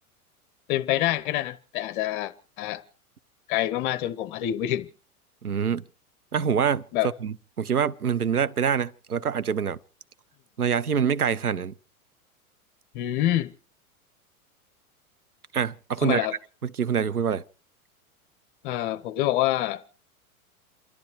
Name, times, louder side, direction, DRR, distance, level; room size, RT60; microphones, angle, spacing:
voice 1, 0.7-2.8 3.5-4.9 6.9-7.1 12.9-13.5 16.0-16.3 18.6-19.8, left 14 dB, 35° left, 0.8 m, -26 dB
voice 2, 5.4-5.8 6.3-6.9 7.2-9.8 10.6-11.7 15.5-16.3 16.6-17.4, right 7 dB, 85° right, 0.7 m, -25 dB
28.5 x 12.0 x 3.1 m
figure-of-eight pair, 95°, 44 cm